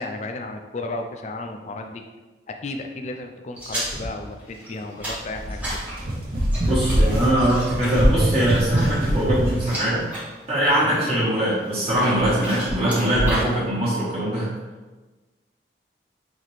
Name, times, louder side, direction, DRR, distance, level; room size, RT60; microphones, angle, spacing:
voice 1, 0.0-2.0 2.6-5.8 10.8-11.0, left 2 dB, 40° left, 5 dB, 0.3 m, -33 dB
sound 1, 3.6-10.2 10.6-11.1 11.7-13.5, equal, 10° right, 1.0 m, -32 dB
sound 2, 5.3-9.6, right 1 dB, 50° right, 0.8 m, -23 dB
voice 2, 6.7-10.0 10.5-14.5, right 1 dB, 35° right, -9 dB, 1.2 m, -22 dB
4.1 x 2.9 x 3.1 m, 1.2 s
head